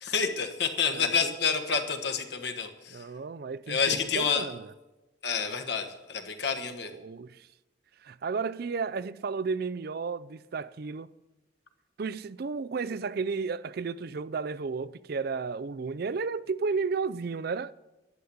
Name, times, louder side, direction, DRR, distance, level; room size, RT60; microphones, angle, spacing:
voice 1, 0.0-3.1 3.7-4.5 5.2-6.9, left 6 dB, 60° left, 1.4 m, -29 dB
voice 2, 0.9-1.3 2.9-4.7 6.8-7.5 8.0-11.1 12.0-17.7, right 4 dB, 50° right, 0.4 m, -33 dB
11.5 x 10.0 x 7.1 m
head